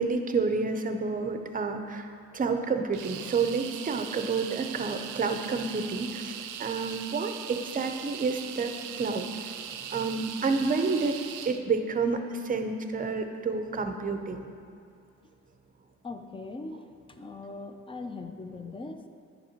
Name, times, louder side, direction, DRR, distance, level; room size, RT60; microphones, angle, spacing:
voice 1, 0.0-2.1 2.3-9.3 9.9-11.2 11.4-14.5, right 4 dB, 30° right, 7 dB, 0.6 m, -29 dB
sound 1, 2.9-11.6, right 9 dB, 90° right, 0.5 m, -40 dB
voice 2, 16.0-16.8 17.2-19.0, left 3 dB, 20° left, 7 dB, 0.5 m, -40 dB
10.0 x 5.3 x 2.9 m, 2.4 s
cardioid pair, 90°, 30 cm